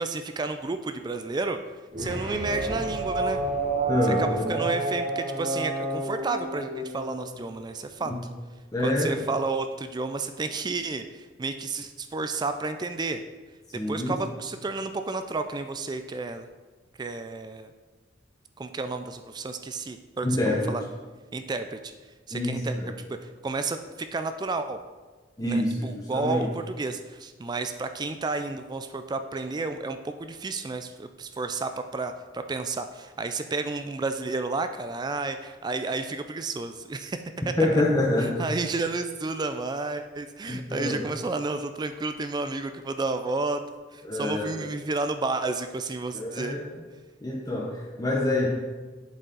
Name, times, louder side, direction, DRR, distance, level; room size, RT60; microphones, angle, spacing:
voice 1, 0.0-1.6 2.0-3.4 4.2-8.1 8.8-13.2 13.9-16.5 17.0-17.7 18.6-20.8 21.3-21.9 22.3-22.8 23.1-24.8 25.4-37.5 38.2-43.6 43.9-46.6, right 3 dB, 20° right, 8 dB, 0.3 m, -31 dB
sound 1, 1.9-7.5, right 2 dB, 40° right, 2.3 m, -30 dB
voice 2, 3.9-4.5 8.1-8.2 8.7-9.1 13.7-14.1 20.2-20.7 22.3-22.9 25.4-26.5 37.6-38.4 40.5-41.0 44.0-44.5 46.1-46.8 47.2-48.5, left 1 dB, 20° left, -2 dB, 0.8 m, -26 dB
8.1 x 7.4 x 3.9 m, 1.3 s
head